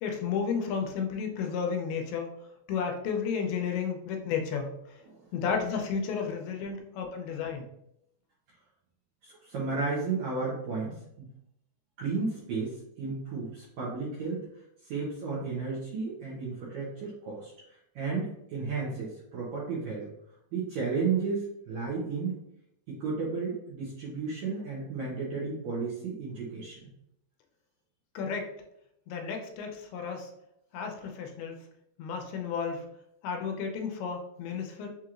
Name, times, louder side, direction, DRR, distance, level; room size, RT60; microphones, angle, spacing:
voice 1, 0.0-2.3 2.7-5.0 5.3-7.7 28.2-28.5 29.1-30.3 30.7-31.6 32.0-32.8 33.2-34.9, left 6 dB, 85° left, 3 dB, 2.5 m, -32 dB
voice 2, 9.2-11.3 12.0-14.4 14.8-20.1 20.5-22.4 22.9-26.9, right 4 dB, 85° right, -6 dB, 1.6 m, -33 dB
6.2 x 2.9 x 2.4 m, 0.79 s
omnidirectional pair, 4.5 m